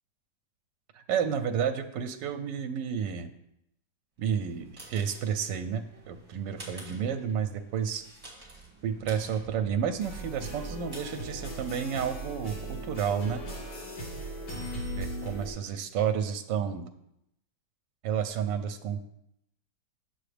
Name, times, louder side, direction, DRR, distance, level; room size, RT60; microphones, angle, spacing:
voice 1, 0.9-3.3 4.2-8.0 8.8-13.4 15.0-16.9 18.0-19.0, right 7 dB, 80° right, 7 dB, 1.2 m, -31 dB
sound 1, 4.3-12.0, right 2 dB, 20° right, 1.8 m, -50 dB
sound 2, 10.0-15.5, right 1 dB, 55° left, 2.0 m, -38 dB
7.7 x 6.3 x 3.3 m, 0.78 s
omnidirectional pair, 1.9 m